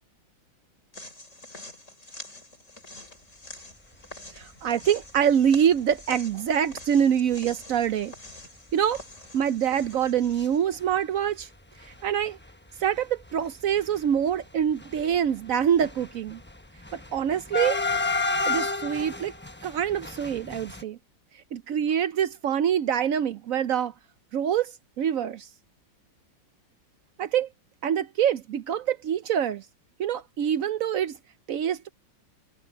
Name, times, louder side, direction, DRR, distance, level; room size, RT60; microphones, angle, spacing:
sound 1, 0.9-10.6, left 2 dB, 40° left, 6.5 m, -46 dB
voice 1, 4.3-8.1 8.7-9.0 9.3-11.5 11.8-12.4 12.8-16.4 16.9-17.8 18.5-19.3 19.6-21.0 21.5-23.9 24.3-25.5 27.2-27.5 27.8-29.6 30.0-31.2 31.5-31.9, right 9 dB, 70° right, 0.8 m, -25 dB
sound 2, 4.8-5.1 5.5-5.6 5.8-6.0 6.8-6.9 7.3-7.5 7.8-7.9 8.3-10.5 10.7-11.4 11.7-20.8, left 3 dB, 10° left, 0.5 m, -32 dB
omnidirectional pair, 2.0 m